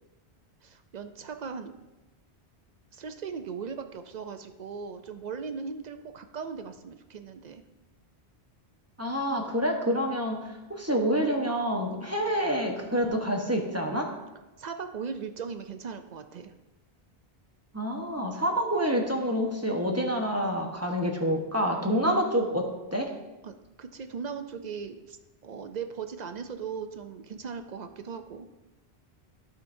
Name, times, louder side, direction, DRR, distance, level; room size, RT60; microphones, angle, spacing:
voice 1, 0.6-1.7 2.9-7.6 14.6-16.5 23.4-25.2 25.4-28.5, right 6 dB, 55° right, 8 dB, 0.5 m, -38 dB
voice 2, 9.0-14.1 17.7-23.1, equal, 15° right, 1 dB, 0.9 m, -27 dB
14.5 x 5.2 x 2.6 m, 1.1 s
omnidirectional pair, 1.1 m